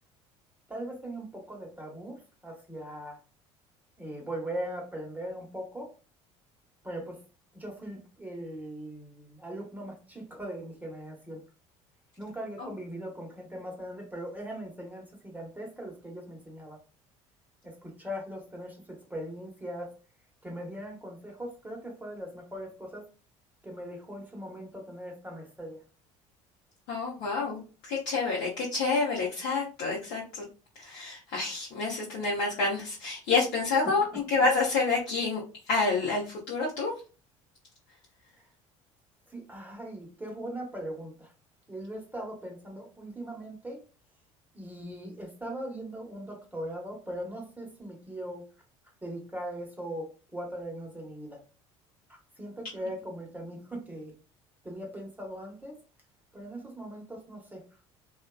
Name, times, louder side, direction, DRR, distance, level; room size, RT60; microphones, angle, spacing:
voice 1, 0.7-3.2 4.0-5.9 6.8-7.2 7.5-11.4 12.2-16.8 17.6-20.0 20.4-23.1 23.6-25.8 33.8-34.2 39.3-41.3 41.7-43.8 44.5-48.5 49.0-51.4 52.1-54.1 54.6-55.8 56.3-57.6, right 1 dB, 10° right, 0 dB, 1.0 m, -40 dB
voice 2, 26.9-30.4 30.8-35.4 35.7-36.9, left 3 dB, 70° left, -4 dB, 0.8 m, -28 dB
2.5 x 2.3 x 2.2 m, 0.34 s
hypercardioid pair, 65°, 16 cm